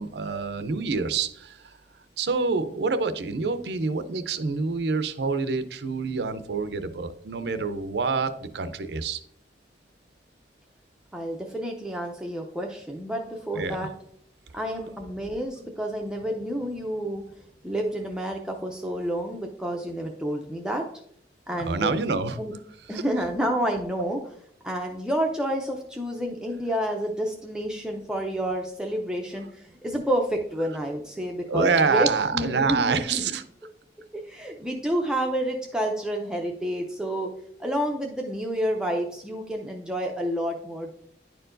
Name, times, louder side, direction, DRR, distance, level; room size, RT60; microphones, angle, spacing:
voice 1, 0.0-1.7 2.2-9.2 13.5-13.9 21.6-22.4 22.9-23.0 31.5-33.4, right 4 dB, 70° right, 11 dB, 0.5 m, -27 dB
voice 2, 11.1-13.9 14.5-17.2 17.6-20.9 21.5-21.9 22.4-22.5 22.9-24.2 24.6-33.2 34.1-37.3 37.6-40.9, equal, 5° right, 1 dB, 0.5 m, -29 dB
10.0 x 4.5 x 2.5 m, 0.68 s
head